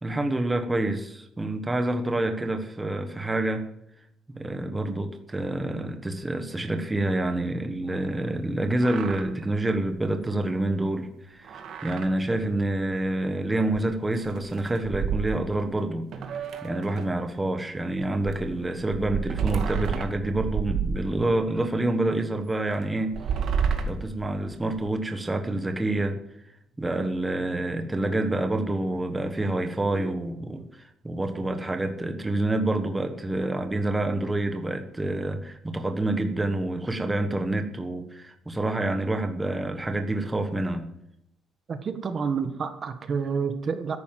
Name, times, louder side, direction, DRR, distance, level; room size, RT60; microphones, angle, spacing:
voice 1, 0.0-3.7 4.3-16.1 16.6-23.1 23.5-26.2 26.8-40.8, right 2 dB, 10° right, 7 dB, 1.4 m, -27 dB
sound 1, 8.4-8.5 8.7-9.3 9.6-9.7 10.0-10.1 11.4-12.1 12.4-12.5 13.7-13.8 14.1-15.7 16.1-17.2 18.0-21.5 22.1-22.2 23.0-24.9, right 6 dB, 55° right, 1.9 m, -30 dB
voice 2, 41.7-44.0, right 6 dB, 35° right, 9 dB, 1.4 m, -29 dB
13.5 x 11.0 x 7.6 m, 0.77 s
cardioid pair, 160°, 0 cm